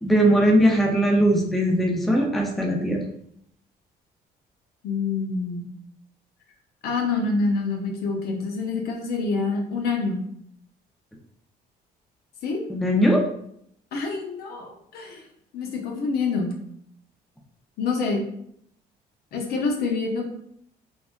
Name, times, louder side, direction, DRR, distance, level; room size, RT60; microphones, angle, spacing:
voice 1, 0.0-3.0 12.7-13.2, equal, ahead, 1 dB, 0.4 m, -20 dB
voice 2, 4.8-5.7 6.8-10.2 12.4-12.6 13.9-15.2 15.5-16.6 17.8-18.3 19.3-20.3, left 4 dB, 70° left, 2 dB, 0.7 m, -26 dB
3.3 x 2.1 x 2.4 m, 0.69 s
cardioid pair, 110°, 17 cm